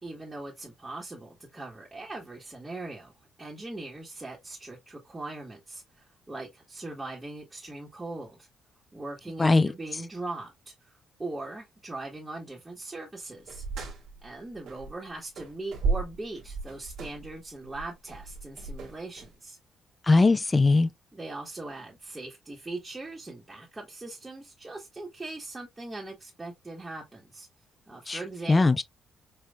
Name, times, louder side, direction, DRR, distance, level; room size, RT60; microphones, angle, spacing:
voice 1, 0.0-3.1 3.4-8.5 8.9-13.6 14.2-19.6 21.1-27.5 27.9-28.6, right 2 dB, 20° right, 1.5 m, -40 dB
voice 2, 9.4-9.7 20.1-20.9 28.1-28.2 28.5-28.8, left 3 dB, 25° left, 0.5 m, -20 dB
sound 1, 13.5-15.1 15.4-19.3, right 4 dB, 80° right, 1.6 m, -34 dB
5.4 x 2.8 x 2.4 m
cardioid pair, 90°, 0 cm